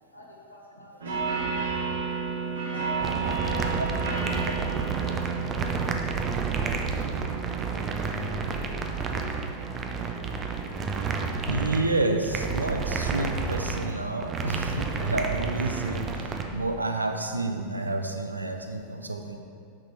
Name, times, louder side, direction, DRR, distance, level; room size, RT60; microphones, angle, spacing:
voice 1, 0.1-1.5 2.7-5.3 8.3-9.2, left 1 dB, 80° left, -3 dB, 1.4 m, -48 dB
sound 1, 1.0-18.3, right 5 dB, 65° right, 1.3 m, -35 dB
sound 2, 3.0-16.4, right 4 dB, 25° right, 0.6 m, -30 dB
voice 2, 11.5-19.4, right 2 dB, 80° right, 5 dB, 0.5 m, -29 dB
6.4 x 6.1 x 4.4 m, 2.3 s
figure-of-eight pair, 90°, 0 cm